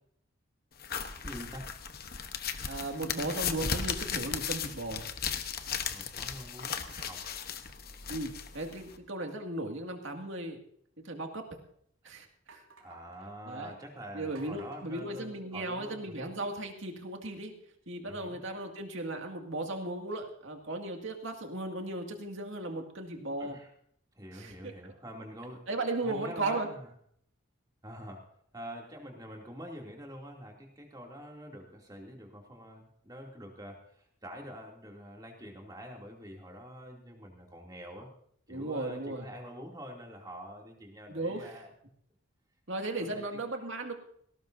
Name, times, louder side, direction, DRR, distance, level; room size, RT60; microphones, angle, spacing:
sound 1, 0.8-9.0, left 7 dB, 45° left, 1.1 m, -36 dB
voice 1, 1.2-1.7 5.9-7.3 12.8-16.3 18.0-18.4 23.4-23.7 24.1-25.7 26.0-26.9 27.8-28.2 28.5-38.1 38.5-41.7 43.1-43.2, equal, 20° right, 0 dB, 2.7 m, -46 dB
voice 2, 2.7-5.0 8.1-10.6 11.0-11.4 12.0-12.6 13.5-13.7 14.1-17.5 17.9-23.6 24.3-24.9 25.7-26.7 38.5-39.3 41.1-41.5 42.7-43.9, right 2 dB, 65° right, 3 dB, 2.2 m, -36 dB
sound 2, 11.8-11.9 12.5-13.3 14.3-15.8, right 4 dB, 80° right, 3.8 m, -57 dB
18.0 x 18.0 x 2.7 m, 0.66 s
head